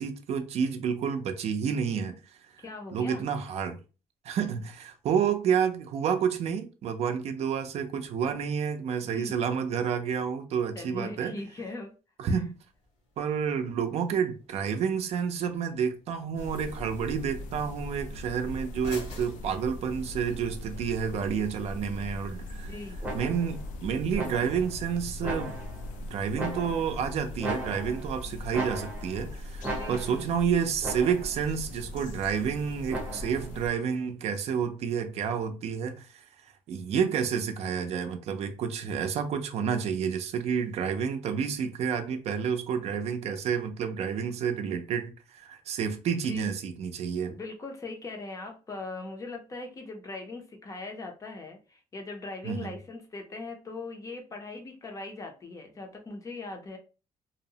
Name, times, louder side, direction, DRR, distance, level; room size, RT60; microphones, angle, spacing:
voice 1, 0.0-2.2 2.5-2.6 2.9-3.8 4.2-11.3 12.2-12.5 13.2-22.7 23.1-25.5 26.1-36.2 36.7-47.3 52.4-52.7, right 7 dB, 55° right, 0.4 m, -29 dB
voice 2, 2.6-3.3 9.1-9.3 10.8-11.9 12.2-12.4 13.2-13.3 22.6-23.0 29.6-30.3 46.2-46.5 47.3-56.8, left 3 dB, 25° left, 0.5 m, -40 dB
sound 1, 12.4-20.4, left 2 dB, 65° left, 0.9 m, -51 dB
sound 2, 16.4-33.7, left 1 dB, 90° left, 0.4 m, -40 dB
sound 3, 23.0-23.6 24.1-24.7 25.2-25.9 26.4-27.0 27.4-28.2 28.5-29.2 29.6-30.3 30.8-31.4 32.9-33.5, right 1 dB, 10° right, 0.7 m, -37 dB
2.7 x 2.0 x 2.7 m
cardioid pair, 155°, 13 cm